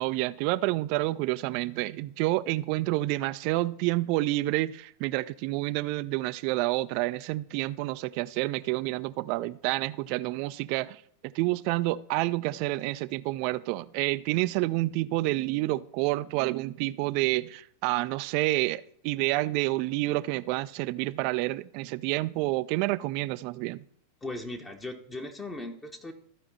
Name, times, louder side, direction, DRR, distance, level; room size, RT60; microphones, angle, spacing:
voice 1, 0.0-23.8, right 19 dB, 45° right, 16 dB, 0.3 m, -29 dB
voice 2, 24.2-26.1, left 2 dB, 15° left, 4 dB, 0.9 m, -38 dB
14.0 x 5.2 x 4.0 m, 0.67 s
figure-of-eight pair, 90°, 0 cm